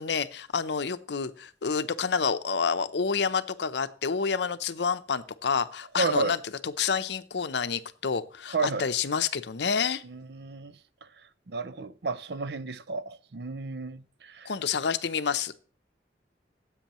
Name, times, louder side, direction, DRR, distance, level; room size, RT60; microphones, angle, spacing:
voice 1, 0.0-6.4 6.6-10.0 14.4-15.5, left 6 dB, 75° left, 0.6 m, -28 dB
voice 2, 6.0-6.3 8.5-8.9 10.0-10.7 11.0-11.1 11.5-14.5, right 3 dB, 65° right, 0.6 m, -32 dB
15.5 x 8.2 x 3.0 m
head